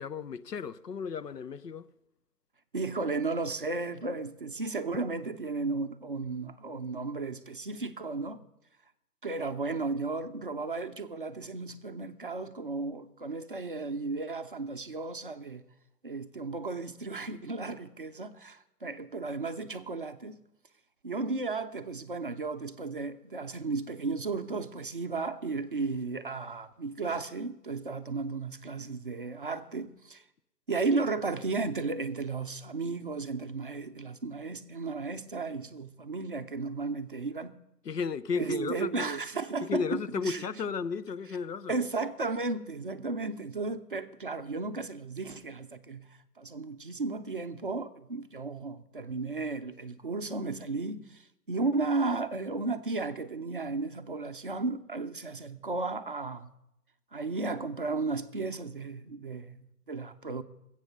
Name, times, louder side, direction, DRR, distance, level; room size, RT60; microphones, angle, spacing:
voice 1, 0.0-1.8 37.9-38.9 39.7-41.7, left 5 dB, 85° left, 0.9 m, -34 dB
voice 2, 2.7-8.4 9.2-15.6 16.0-20.4 21.0-30.2 30.7-37.6 38.3-40.6 41.7-46.0 46.4-56.5 57.1-60.4, right 3 dB, 35° right, 0.6 m, -34 dB
20.5 x 8.1 x 6.6 m
figure-of-eight pair, 155°, 47 cm